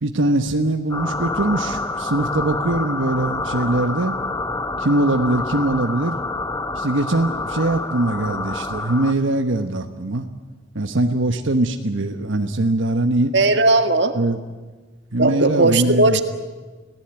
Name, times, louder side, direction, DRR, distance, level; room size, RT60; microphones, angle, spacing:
voice 1, 0.0-4.2 4.8-6.2 6.7-10.3 10.7-13.3 14.1-14.4 15.1-16.2, right 2 dB, 75° right, 6 dB, 1.2 m, -21 dB
sound 1, 0.9-9.1, left 3 dB, 15° left, 1.1 m, -27 dB
voice 2, 13.3-14.1 15.2-16.2, right 2 dB, 60° right, 7 dB, 1.9 m, -17 dB
29.5 x 18.5 x 9.0 m, 1.3 s
head